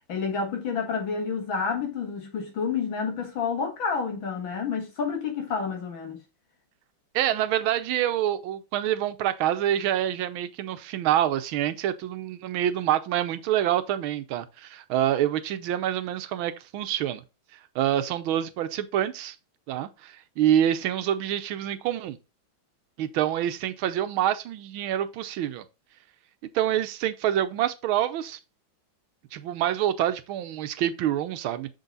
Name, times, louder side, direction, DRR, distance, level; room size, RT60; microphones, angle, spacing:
voice 1, 0.1-6.2, left 5 dB, 75° left, 2.5 m, -29 dB
voice 2, 7.1-17.2 17.7-19.4 19.7-22.2 23.0-25.7 26.5-28.4 29.3-31.7, right 11 dB, 90° right, 1.5 m, -26 dB
6.8 x 4.0 x 3.9 m
omnidirectional pair, 2.2 m